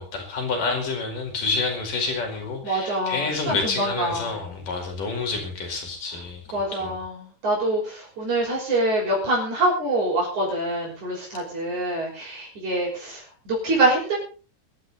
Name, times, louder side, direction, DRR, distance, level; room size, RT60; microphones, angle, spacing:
voice 1, 0.0-6.4 6.8-6.9, left 4 dB, 80° left, 4 dB, 6.5 m, -28 dB
voice 2, 2.6-4.6 6.5-14.2, right 1 dB, 60° right, -4 dB, 7.5 m, -25 dB
23.5 x 12.5 x 4.1 m, 0.36 s
omnidirectional pair, 3.7 m